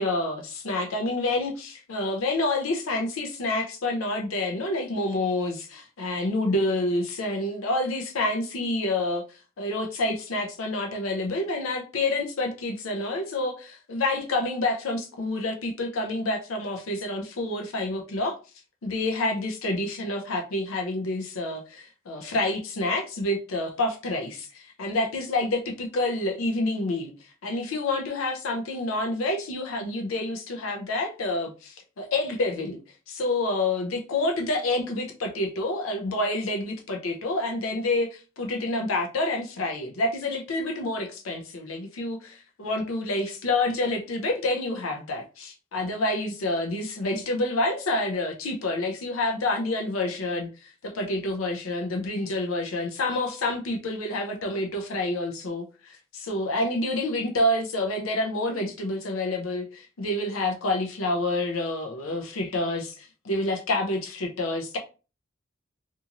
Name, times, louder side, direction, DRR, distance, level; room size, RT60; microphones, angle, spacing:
voice 1, 0.0-9.2 9.6-18.4 18.8-27.1 27.4-32.8 33.1-64.8, left 2 dB, 85° left, 0.5 m, -28 dB
2.6 x 2.4 x 2.8 m
head